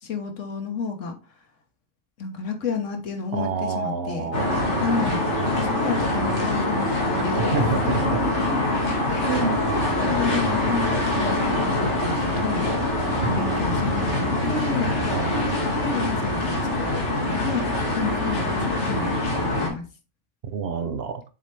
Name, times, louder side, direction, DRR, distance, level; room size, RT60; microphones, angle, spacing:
voice 1, 0.0-1.2 2.2-4.3 4.7-5.2 5.6-8.6 9.1-9.4 10.0-12.9 13.4-14.9 15.7-19.8, left 5 dB, 85° left, 1.6 m, -31 dB
voice 2, 3.3-4.8 7.4-8.2 9.3-9.7 13.2-13.5 15.1-15.4 20.4-21.2, right 5 dB, 60° right, 0.9 m, -28 dB
sound 1, 4.3-19.7, left 1 dB, 65° left, 2.4 m, -24 dB
7.3 x 4.3 x 3.3 m
omnidirectional pair, 1.2 m